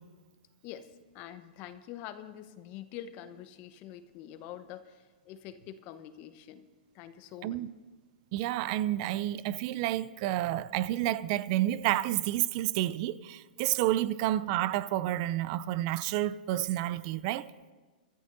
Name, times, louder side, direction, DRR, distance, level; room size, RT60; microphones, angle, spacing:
voice 1, 0.6-6.7 6.9-7.6, left 11 dB, 40° left, 1.0 m, -46 dB
voice 2, 8.3-17.5, right 14 dB, 45° right, 0.5 m, -30 dB
25.5 x 14.5 x 2.7 m
hypercardioid pair, 130°, 5 cm